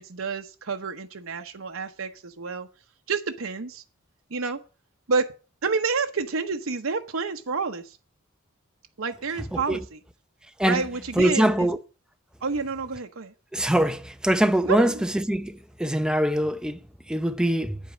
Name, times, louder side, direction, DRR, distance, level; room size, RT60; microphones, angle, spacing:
voice 1, 0.0-2.7 3.1-3.8 4.3-4.6 5.1-5.3 5.6-8.0 9.0-10.0 10.6-11.7 12.4-13.3 14.7-15.0, right 4 dB, 85° right, 0.9 m, -29 dB
voice 2, 9.5-9.8 10.6-10.8 11.2-11.8 13.5-17.8, right 1 dB, 5° right, 0.6 m, -23 dB
9.5 x 8.2 x 6.2 m
head